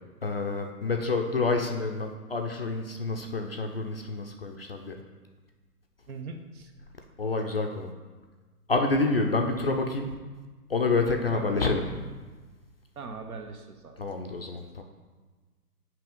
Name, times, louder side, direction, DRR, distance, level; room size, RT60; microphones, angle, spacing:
voice 1, 0.2-5.0 7.2-7.9 8.7-10.1 10.7-11.8 14.0-14.8, left 3 dB, 40° left, 3 dB, 0.4 m, -28 dB
voice 2, 6.1-6.7 11.3-11.7 13.0-14.0, right 4 dB, 65° right, 6 dB, 0.9 m, -41 dB
7.6 x 2.8 x 5.2 m, 1.3 s
figure-of-eight pair, 145°, 47 cm